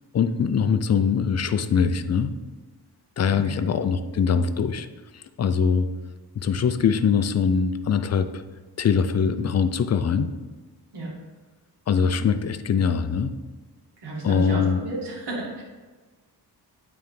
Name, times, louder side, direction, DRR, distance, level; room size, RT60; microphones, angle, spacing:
voice 1, 0.1-2.3 3.2-4.9 5.1-5.9 6.4-8.4 8.8-10.3 11.9-13.3 14.2-14.8, left 6 dB, 40° left, 11 dB, 0.5 m, -22 dB
voice 2, 3.3-3.7 10.9-11.1 14.0-15.6, right 1 dB, 80° right, -5 dB, 1.9 m, -32 dB
8.9 x 3.4 x 3.2 m, 1.3 s
cardioid pair, 80°, 41 cm